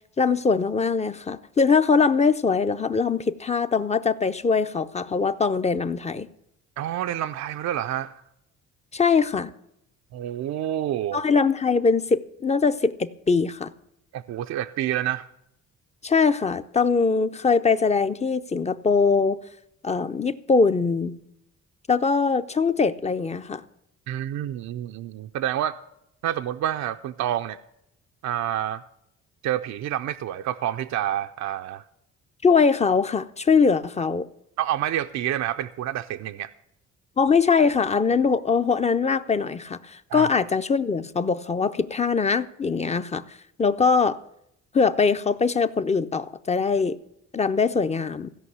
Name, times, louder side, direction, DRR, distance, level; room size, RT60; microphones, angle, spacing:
voice 1, 0.2-6.3 8.9-9.5 11.1-13.7 16.0-19.4 19.8-21.1 21.9-23.6 32.4-34.3 37.2-43.2 43.6-44.2 44.7-47.0 47.3-48.3, left 5 dB, 20° left, 0.6 m, -22 dB
voice 2, 6.8-8.2 10.1-11.2 14.1-15.3 24.1-25.8 26.2-27.6 28.2-28.8 29.4-31.8 34.6-36.5 40.1-40.3, right 12 dB, 65° right, 0.5 m, -28 dB
16.0 x 5.4 x 8.0 m
cardioid pair, 90°, 30 cm